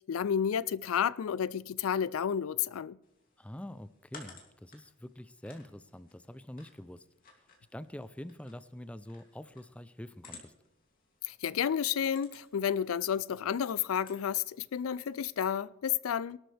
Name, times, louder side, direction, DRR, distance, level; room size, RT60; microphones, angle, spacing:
voice 1, 0.1-3.0 11.2-16.4, left 8 dB, 90° left, 0.4 m, -31 dB
sound 1, 3.0-15.6, left 4 dB, 45° left, 2.7 m, -58 dB
voice 2, 3.4-7.5 7.7-10.5, left 1 dB, 5° left, 0.4 m, -46 dB
22.0 x 12.5 x 3.4 m
head